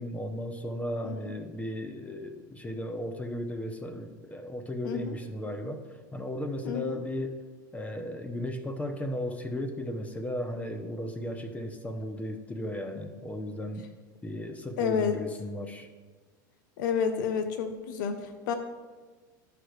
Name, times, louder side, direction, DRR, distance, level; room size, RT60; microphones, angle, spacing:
voice 1, 0.0-5.8 6.1-7.4 7.7-13.9 14.2-15.9, left 1 dB, 15° left, 6 dB, 0.8 m, -35 dB
voice 2, 4.8-5.2 6.6-7.0 14.8-15.2 16.8-18.5, left 7 dB, 75° left, 7 dB, 0.8 m, -30 dB
12.5 x 5.0 x 3.2 m, 1.4 s
hypercardioid pair, 95°, 11 cm